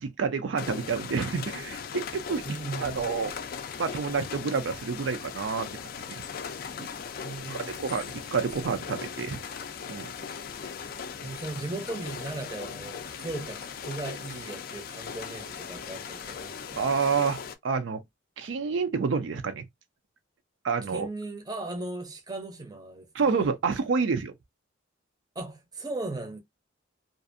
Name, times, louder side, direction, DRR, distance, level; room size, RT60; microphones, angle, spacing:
voice 1, 0.0-2.4 2.8-3.3 3.8-5.7 6.1-6.2 6.8-6.9 7.5-9.4 9.9-10.1 16.8-18.0 18.4-19.6 20.6-21.1 23.1-24.3, right 5 dB, 75° right, 0.4 m, -28 dB
sound 1, 0.6-17.6, left 6 dB, 50° left, 0.3 m, -39 dB
voice 2, 2.4-3.1 7.2-7.7 8.5-8.7 10.8-16.9 20.8-23.4 25.4-26.4, right 2 dB, 20° right, 0.6 m, -38 dB
2.6 x 2.4 x 2.5 m
head